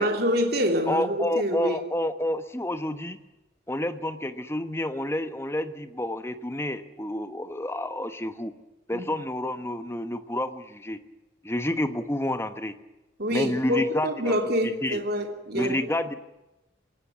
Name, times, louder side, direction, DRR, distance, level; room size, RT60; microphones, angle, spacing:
voice 1, 0.0-1.8 8.9-9.1 13.2-16.0, equal, 50° right, 4 dB, 3.0 m, -26 dB
voice 2, 0.9-3.2 3.7-8.5 8.9-11.0 11.4-12.7 13.3-14.3 14.6-15.0 15.5-16.2, left 1 dB, 15° left, 10 dB, 1.2 m, -29 dB
21.0 x 18.5 x 8.3 m, 1.0 s
head